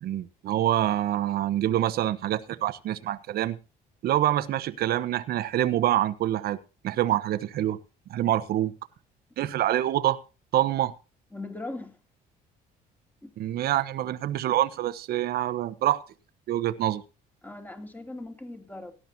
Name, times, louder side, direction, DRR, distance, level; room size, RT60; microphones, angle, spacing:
voice 1, 0.0-3.6 4.0-6.6 6.8-7.8 8.1-8.7 9.4-10.2 10.5-10.9 13.4-16.0 16.5-17.0, right 13 dB, 65° right, 1.1 m, -26 dB
voice 2, 11.3-12.0 13.2-13.5 17.4-18.9, left 2 dB, 10° left, 2.7 m, -39 dB
18.0 x 11.5 x 2.8 m
cardioid pair, 110°, 17 cm